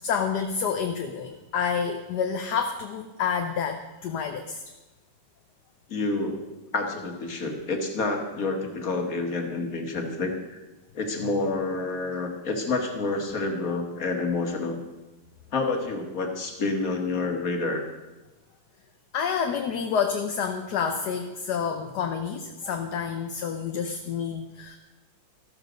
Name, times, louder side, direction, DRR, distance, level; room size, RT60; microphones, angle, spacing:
voice 1, 0.0-4.6 19.1-24.8, left 6 dB, 65° left, 5 dB, 1.4 m, -28 dB
voice 2, 5.9-10.6 10.9-14.8 15.5-17.8, left 3 dB, 45° left, 3 dB, 2.2 m, -28 dB
14.0 x 13.0 x 5.2 m, 1.1 s
omnidirectional pair, 2.1 m